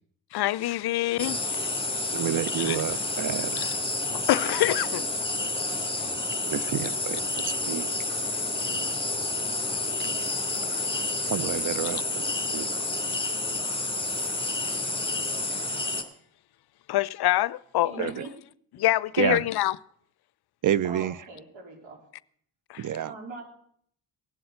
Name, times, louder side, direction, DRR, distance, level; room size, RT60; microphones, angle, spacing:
voice 1, 0.3-2.2 2.6-2.8 4.3-5.1 6.0-6.1 16.9-18.1 18.8-19.8 22.7-22.8, left 15 dB, 55° left, 0.6 m, -26 dB
sound 1, 1.2-16.0, left 2 dB, 10° left, 2.9 m, -29 dB
voice 2, 2.1-3.8 6.5-7.9 10.8-10.9 11.3-12.2 12.5-12.9 18.0-18.2 19.2-19.4 20.6-21.2 22.8-23.1, right 10 dB, 45° right, 0.5 m, -29 dB
voice 3, 17.8-18.3 20.8-22.0 23.1-23.4, right 3 dB, 75° right, 4.0 m, -41 dB
17.5 x 7.8 x 8.0 m
hypercardioid pair, 45°, 46 cm